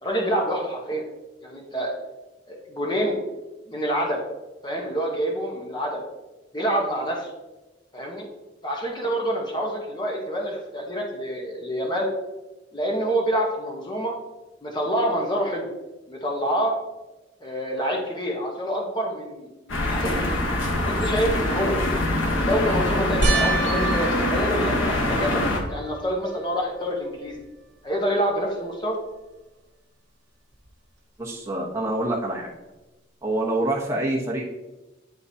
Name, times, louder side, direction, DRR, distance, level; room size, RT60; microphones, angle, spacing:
voice 1, 0.0-1.0 1.4-1.9 2.5-3.2 3.7-4.2 4.6-6.0 6.5-7.3 7.9-8.2 8.6-12.1 12.7-14.1 14.6-15.7 16.1-16.7 17.4-20.2 20.9-21.8 22.4-25.4 25.7-27.4 27.8-29.0, equal, 25° left, -1 dB, 1.0 m, -27 dB
sound 1, 19.7-25.6, left 1 dB, 85° left, 1.1 m, -24 dB
sound 2, 23.2-25.8 26.4-27.0 27.3-27.4 30.6-30.7, right 3 dB, 65° right, 1.0 m, -28 dB
voice 2, 31.2-32.5 33.2-34.4, right 1 dB, 15° right, -3 dB, 1.1 m, -26 dB
10.0 x 3.8 x 2.7 m, 1.1 s
head